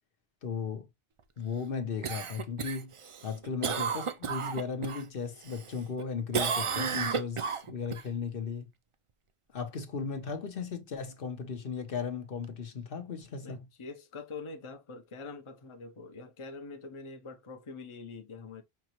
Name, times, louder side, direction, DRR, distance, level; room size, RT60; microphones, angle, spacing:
voice 1, 0.4-0.9 1.4-2.9 3.2-8.7 9.5-13.6, left 6 dB, 60° left, 1.0 m, -36 dB
Cough, 2.0-5.0 5.4-6.0 6.3-8.0 12.4-12.5, right 6 dB, 50° right, 0.3 m, -33 dB
voice 2, 13.4-18.6, left 4 dB, 35° left, 0.7 m, -44 dB
5.8 x 2.9 x 2.9 m
omnidirectional pair, 1.1 m